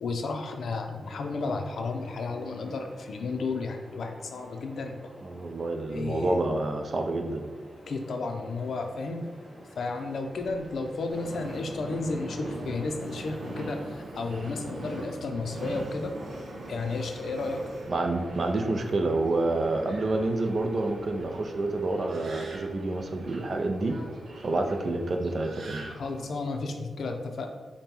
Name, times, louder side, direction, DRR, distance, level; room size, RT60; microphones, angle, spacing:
voice 1, 0.0-5.0 5.9-6.4 7.9-9.2 9.8-16.1 16.7-17.6 25.9-27.5, left 3 dB, 75° left, 4 dB, 0.5 m, -33 dB
sound 1, 1.0-14.3, right 1 dB, 30° right, 0.9 m, -50 dB
voice 2, 5.2-7.5 17.9-24.1 24.4-25.9, right 2 dB, 50° right, 4 dB, 0.5 m, -28 dB
Subway metro underground, 11.1-26.3, right 2 dB, 75° right, 0.8 m, -40 dB
5.3 x 2.2 x 4.4 m, 1.5 s
wide cardioid pair, 105°, 0 cm